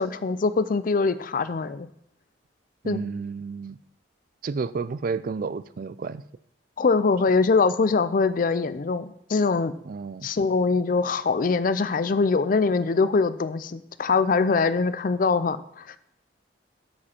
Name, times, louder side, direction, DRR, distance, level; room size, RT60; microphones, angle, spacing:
voice 1, 0.0-1.9 2.9-3.0 6.8-9.7 10.2-15.8, left 4 dB, 45° left, 14 dB, 0.4 m, -23 dB
voice 2, 2.8-3.8 4.4-6.2 9.8-10.3, right 4 dB, 50° right, 16 dB, 0.4 m, -31 dB
8.3 x 7.6 x 4.4 m, 0.75 s
head